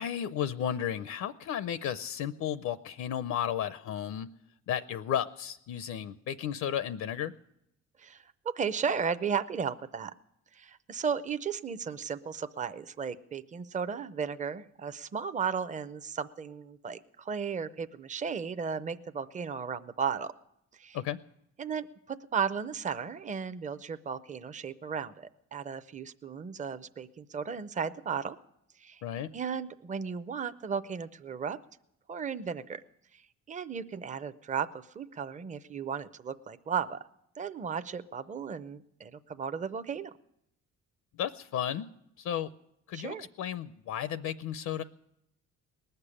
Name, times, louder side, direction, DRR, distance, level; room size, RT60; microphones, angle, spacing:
voice 1, 0.0-4.3 4.7-7.3 20.9-21.2 29.0-29.3 41.1-41.9 42.2-42.5 42.9-44.8, left 9 dB, 70° left, 14 dB, 0.6 m, -33 dB
voice 2, 8.0-10.1 10.5-20.3 20.8-21.0 21.6-28.4 28.8-29.0 29.3-31.6 32.1-32.8 33.5-34.7 34.9-37.0 37.4-40.1 42.9-43.3, right 6 dB, 25° right, 12 dB, 0.6 m, -35 dB
19.5 x 6.8 x 9.9 m, 0.79 s
cardioid pair, 105°, 30 cm